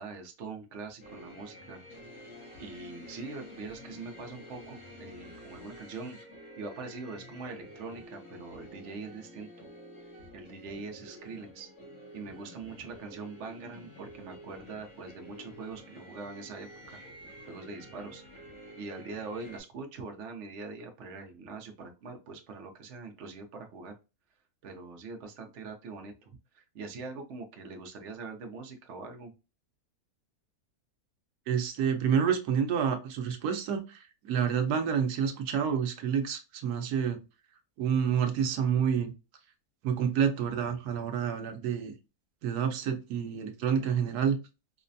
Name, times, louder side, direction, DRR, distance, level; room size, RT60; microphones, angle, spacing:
voice 1, 0.0-1.8 2.6-6.2 6.6-9.7 10.3-11.7 12.1-17.0 17.5-18.2 18.8-23.9 24.6-29.3, right 4 dB, 55° right, 3 dB, 1.0 m, -43 dB
sound 1, 1.0-19.6, equal, 90° left, 2.5 m, -49 dB
voice 2, 31.5-37.2 37.8-39.1 39.8-41.9 42.4-44.4, right 7 dB, 85° right, 6 dB, 1.2 m, -28 dB
4.8 x 2.2 x 2.6 m, 0.28 s
omnidirectional pair, 1.6 m